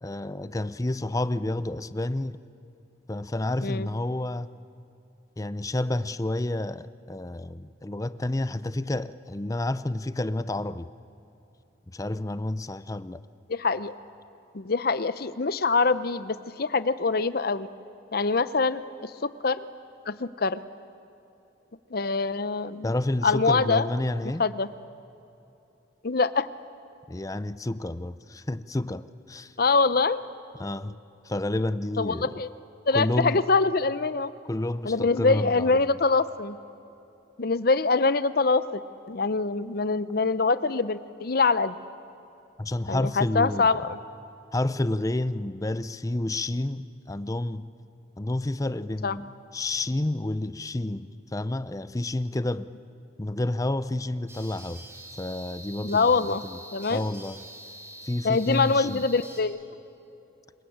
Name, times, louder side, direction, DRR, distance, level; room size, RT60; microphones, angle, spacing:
voice 1, 0.0-2.4 3.1-4.5 5.4-10.9 11.9-13.2 22.8-24.5 27.1-29.5 30.6-31.0 31.2-32.3 32.9-33.4 34.5-36.0 42.6-43.7 44.5-47.7 48.2-52.7 53.2-54.8 55.1-56.6 56.9-57.4 58.0-59.0, left 1 dB, 20° left, 0.5 m, -30 dB
voice 2, 13.5-13.9 14.5-17.7 18.1-19.6 20.1-20.6 21.9-22.9 23.2-23.9 24.4-24.7 26.0-26.5 29.6-30.2 32.0-32.5 32.9-34.3 34.8-36.6 37.4-38.8 39.1-41.8 42.9-44.0 49.0-49.2 55.8-56.4 56.7-57.0 58.2-59.6, left 4 dB, 55° left, 0.7 m, -24 dB
sound 1, 54.3-59.4, right 1 dB, 15° right, 3.7 m, -45 dB
27.0 x 22.0 x 8.7 m
head